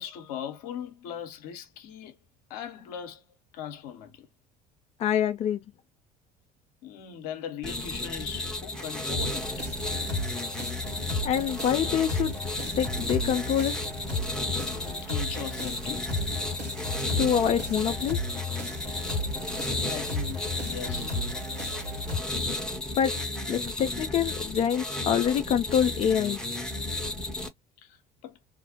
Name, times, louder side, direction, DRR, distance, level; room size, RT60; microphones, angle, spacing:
voice 1, 0.0-2.2 2.5-3.2 3.5-4.3 6.8-9.7 14.6-16.0 19.4-21.1 27.8-28.4, left 9 dB, 65° left, 0.7 m, -40 dB
voice 2, 5.0-5.6 11.2-12.3 12.8-13.7 17.2-18.2 23.0-23.1 23.5-26.4, left 9 dB, 30° left, 0.4 m, -25 dB
sound 1, 7.6-27.5, left 2 dB, 5° left, 0.8 m, -33 dB
sound 2, 9.2-22.2, left 2 dB, 85° right, 1.2 m, -35 dB
2.4 x 2.0 x 2.8 m
figure-of-eight pair, 60°, 21 cm